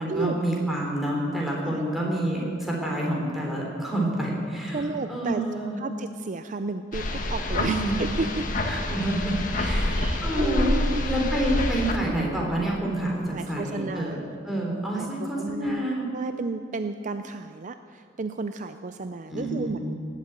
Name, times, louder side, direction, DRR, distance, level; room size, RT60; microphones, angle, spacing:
voice 1, 0.0-5.8 7.6-8.0 8.7-14.2 14.4-16.1 19.3-20.0, right 1 dB, ahead, -3 dB, 3.6 m, -28 dB
voice 2, 4.7-5.4 5.8-7.0 7.3-8.4 9.5-11.0 13.3-14.2 14.9-19.9, right 3 dB, 40° right, 9 dB, 0.5 m, -33 dB
sound 1, 6.9-12.0, left 1 dB, 45° left, 1.4 m, -27 dB
18.5 x 8.3 x 9.0 m, 2.4 s
head